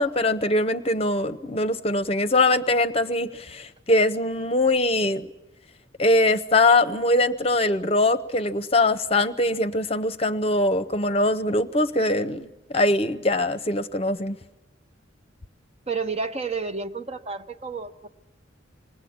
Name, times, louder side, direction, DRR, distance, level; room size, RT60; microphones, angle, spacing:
voice 1, 0.0-5.2 6.0-14.4, left 2 dB, 30° left, 0.8 m, -22 dB
voice 2, 15.9-18.1, right 4 dB, 35° right, 1.0 m, -30 dB
26.5 x 20.0 x 8.7 m
head